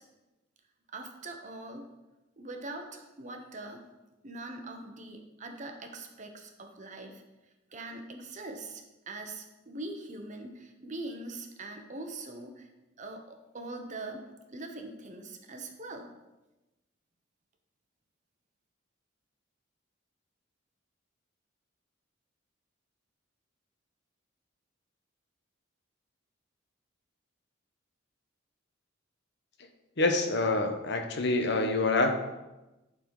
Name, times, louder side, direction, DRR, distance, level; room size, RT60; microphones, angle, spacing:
voice 1, 0.9-1.8 2.4-3.9 4.2-7.2 7.7-12.7 13.0-16.2, right 2 dB, 40° right, 4 dB, 0.9 m, -42 dB
voice 2, 30.0-32.2, left 2 dB, 55° left, 5 dB, 0.9 m, -26 dB
11.5 x 4.0 x 4.8 m, 1.0 s
head